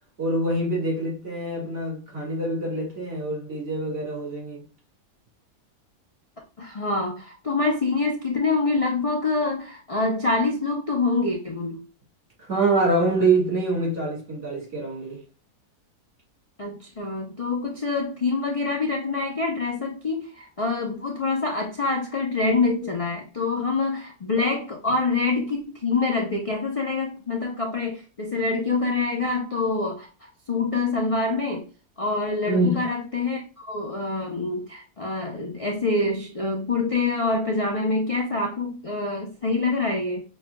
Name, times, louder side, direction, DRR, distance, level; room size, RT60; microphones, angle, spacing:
voice 1, 0.2-4.6 12.4-15.2 32.5-32.8, right 2 dB, 50° right, 2.2 m, -25 dB
voice 2, 6.6-11.8 16.6-30.1 30.5-31.6 32.0-40.2, left 3 dB, 65° left, 0.3 m, -26 dB
5.9 x 3.1 x 2.2 m
omnidirectional pair, 1.6 m